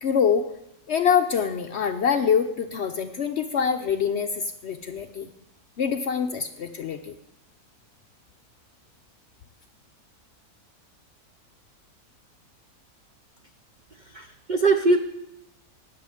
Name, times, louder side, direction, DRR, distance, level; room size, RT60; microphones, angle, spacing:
voice 1, 0.0-0.5 0.9-5.3 5.8-7.1, left 7 dB, 65° left, 7 dB, 0.7 m, -25 dB
voice 2, 14.0-15.0, right 3 dB, 65° right, 7 dB, 0.4 m, -22 dB
18.0 x 6.9 x 5.0 m, 0.84 s
omnidirectional pair, 1.6 m